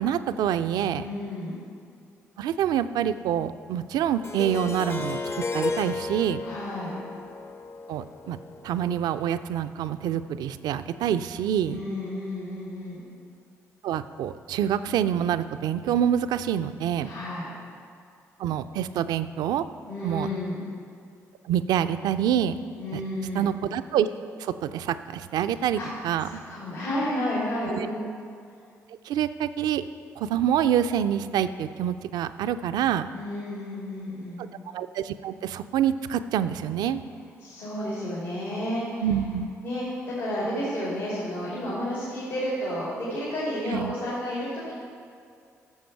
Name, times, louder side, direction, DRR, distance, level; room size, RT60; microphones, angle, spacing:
voice 1, 0.0-1.1 2.4-5.2 5.5-6.4 7.9-8.4 8.6-11.8 13.8-17.1 18.4-19.6 20.0-20.3 21.5-22.6 22.9-23.0 23.3-26.4 27.7-27.9 29.0-29.8 30.2-33.1 34.4-34.5 34.7-37.0 39.0-39.5 43.7-43.9, right 9 dB, 65° right, 12 dB, 0.4 m, -26 dB
voice 2, 0.9-1.6 6.4-6.9 11.6-13.0 17.0-17.5 19.9-20.6 22.8-23.5 25.7-28.1 33.1-34.5 37.4-39.0 39.6-44.7, left 1 dB, 75° left, -8 dB, 2.8 m, -31 dB
Harp, 4.2-9.2, left 3 dB, 35° left, 0.6 m, -34 dB
13.0 x 7.1 x 4.5 m, 2.3 s
figure-of-eight pair, 40°, 8 cm